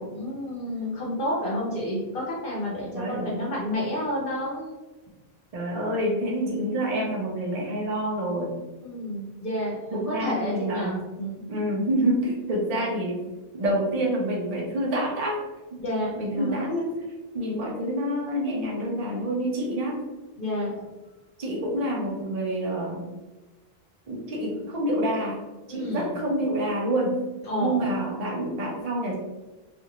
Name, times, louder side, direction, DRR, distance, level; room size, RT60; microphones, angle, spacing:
voice 1, 0.0-4.7 8.8-11.4 15.8-16.6 20.4-20.8 25.7-26.2 27.4-27.9, equal, 65° left, -5 dB, 0.8 m, -30 dB
voice 2, 2.9-3.3 5.5-8.5 9.9-10.9 11.5-13.2 13.5-15.4 15.7-15.8 16.2-16.9 17.3-20.0 21.4-23.0 24.1-27.2 27.6-29.1, right 1 dB, 45° right, -3 dB, 0.6 m, -27 dB
2.5 x 2.5 x 2.8 m, 1.2 s
omnidirectional pair, 1.0 m